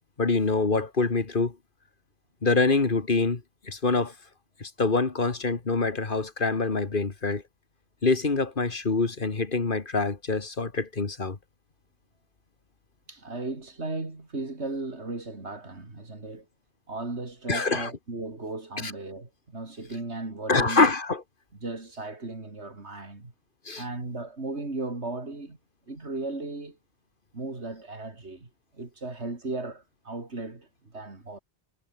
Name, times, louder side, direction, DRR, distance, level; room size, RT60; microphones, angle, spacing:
voice 1, 0.2-1.6 2.4-4.1 4.6-7.4 8.0-11.4 17.5-17.9 18.8-18.9 20.5-21.2 23.7-23.8, left 3 dB, 50° left, 1.9 m, -25 dB
voice 2, 13.1-16.5 16.9-20.9 21.6-23.3 23.8-25.6 25.9-26.8 27.3-31.4, right 2 dB, 85° right, 3.9 m, -36 dB
omnidirectional pair, 1.1 m